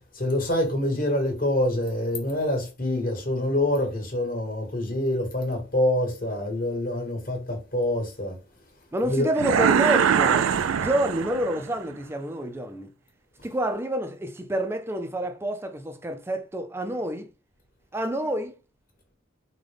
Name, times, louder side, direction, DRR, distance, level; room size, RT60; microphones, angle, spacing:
voice 1, 0.0-8.4 9.0-9.3, left 1 dB, 45° left, 1.2 m, -26 dB
voice 2, 8.9-12.9 13.4-17.3 17.9-18.6, right 1 dB, 10° right, 0.3 m, -28 dB
sound 1, 9.4-11.7, right 7 dB, 90° right, 0.3 m, -22 dB
3.8 x 2.2 x 3.3 m
head